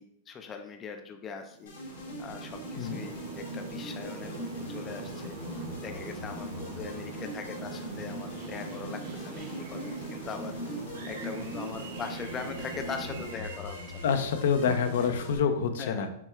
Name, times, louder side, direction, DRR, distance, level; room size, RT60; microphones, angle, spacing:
voice 1, 0.0-1.7 2.2-10.6 11.1-13.8 15.0-15.1 15.8-16.1, left 6 dB, 20° left, 6 dB, 0.3 m, -41 dB
sound 1, 1.5-13.3, right 3 dB, 45° right, 0.8 m, -41 dB
sound 2, 1.7-15.4, left 1 dB, 90° left, 1.1 m, -42 dB
sound 3, 8.0-8.5 8.9-9.0 10.8-14.1, right 6 dB, 75° right, 0.7 m, -48 dB
voice 2, 14.0-16.1, left 6 dB, 70° left, 8 dB, 0.5 m, -27 dB
5.8 x 2.3 x 3.3 m, 0.75 s
supercardioid pair, 155°, 0 cm